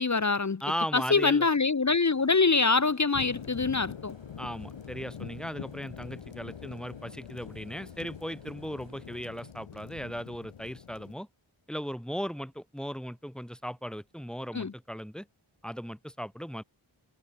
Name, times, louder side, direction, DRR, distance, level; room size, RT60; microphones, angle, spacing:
voice 1, 0.0-0.6 0.9-4.1 14.5-14.7, left 4 dB, 35° left, 0.7 m, -24 dB
voice 2, 0.6-1.5 4.4-11.3 11.7-15.3 15.6-16.6, equal, ahead, 4.4 m, -37 dB
sound 1, 2.0-9.5, right 3 dB, 65° right, 6.4 m, -58 dB
sound 2, 3.1-11.1, left 8 dB, 80° left, 0.9 m, -44 dB
wide cardioid pair, 50°, 49 cm